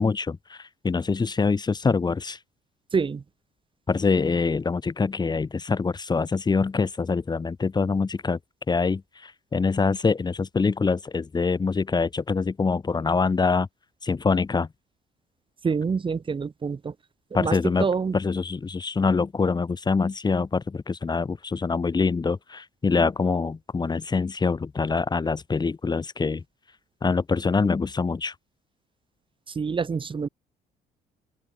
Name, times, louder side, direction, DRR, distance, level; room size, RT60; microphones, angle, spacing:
voice 1, 0.0-2.4 3.9-8.4 8.7-13.7 14.0-14.7 17.3-17.9 18.1-26.4 27.0-28.3, left 4 dB, 25° left, 3.2 m, -25 dB
voice 2, 2.9-3.2 15.6-16.9 17.3-18.2 29.5-30.3, right 5 dB, 30° right, 3.9 m, -27 dB
open air
cardioid pair, 110°, 17 cm